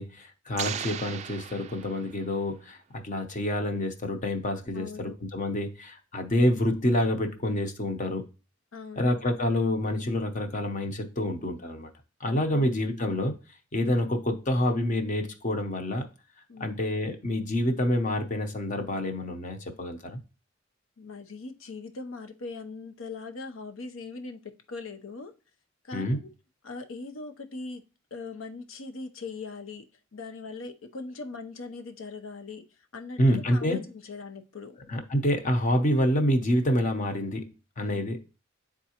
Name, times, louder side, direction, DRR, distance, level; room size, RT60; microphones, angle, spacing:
voice 1, 0.0-2.8 3.0-8.2 9.0-11.9 12.2-13.3 13.7-16.1 16.6-20.2 25.9-26.2 33.2-33.8 34.9-37.5 37.8-38.2, left 1 dB, 40° left, 6 dB, 0.8 m, -27 dB
sound 1, 0.6-2.4, right 8 dB, 35° right, 0.3 m, -37 dB
voice 2, 4.7-5.2 8.7-9.1 12.5-12.7 16.5-16.8 21.0-25.3 25.8-26.3 26.6-27.8 28.1-32.6 32.9-33.2 33.5-34.8, left 3 dB, 85° left, 7 dB, 0.7 m, -40 dB
9.8 x 3.7 x 2.9 m, 0.33 s
head